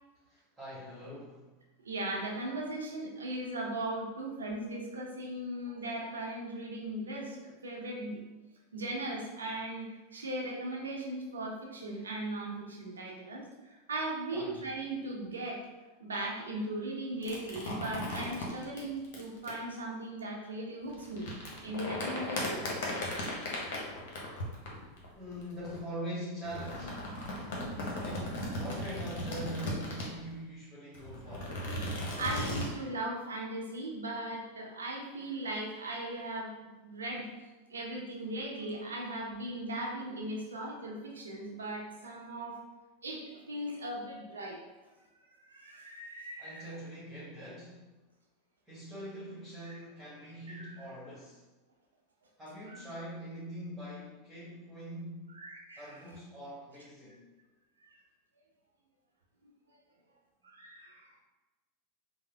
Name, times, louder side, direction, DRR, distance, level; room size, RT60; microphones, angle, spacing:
voice 1, 0.3-1.5 14.3-14.7 25.1-27.1 27.8-31.6 46.4-47.9 48.7-51.4 52.4-55.3 55.8-57.2, equal, 10° right, -9 dB, 1.3 m, -43 dB
voice 2, 1.8-8.2 8.7-15.6 16.0-21.3 21.6-22.6 27.3-27.7 31.9-37.3 37.7-42.5 43.0-44.6 45.5-46.7 49.6-49.8 50.5-50.7 52.7-52.8 55.3-56.0 57.1-57.2 60.4-61.1, right 1 dB, 90° right, -1 dB, 0.7 m, -38 dB
sound 1, 17.2-19.5 20.9-25.8 26.4-30.3 30.9-32.7, left 1 dB, 60° left, 0.9 m, -37 dB
3.4 x 2.1 x 3.4 m, 1.1 s
hypercardioid pair, 95°, 0 cm